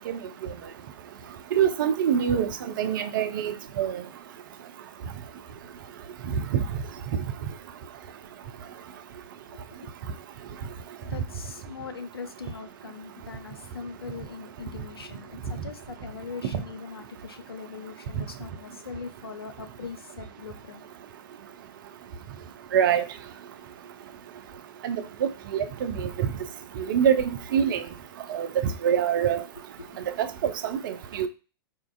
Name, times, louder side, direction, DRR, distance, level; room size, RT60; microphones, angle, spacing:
voice 1, 1.5-2.5 2.8-4.0 16.5-16.6 22.7-23.0 24.8-26.1 26.8-27.8 28.3-28.5 28.8-29.4 30.2-31.3, right 8 dB, 60° right, 0.4 m, -25 dB
voice 2, 9.5-9.9 11.0-20.8 29.8-30.0, left 5 dB, 85° left, 0.5 m, -41 dB
4.3 x 2.4 x 2.3 m
figure-of-eight pair, 100°, 12 cm